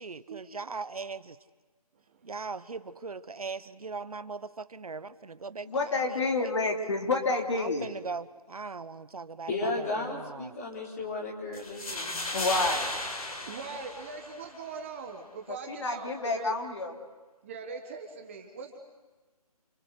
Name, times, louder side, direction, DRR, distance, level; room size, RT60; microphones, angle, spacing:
voice 1, 0.0-1.4 2.2-6.7 7.5-10.5, right 4 dB, 70° right, 13 dB, 1.1 m, -40 dB
voice 2, 5.7-7.9 12.3-12.9 15.5-16.9, left 3 dB, 50° left, 3 dB, 3.3 m, -29 dB
voice 3, 9.5-12.2, left 2 dB, 25° left, -1 dB, 4.4 m, -34 dB
sound 1, 11.5-14.6, left 2 dB, 65° left, 6.0 m, -35 dB
voice 4, 13.4-16.5 17.4-18.8, right 5 dB, 20° right, 3 dB, 1.4 m, -41 dB
28.0 x 23.5 x 8.2 m, 1.3 s
figure-of-eight pair, 165°, 20 cm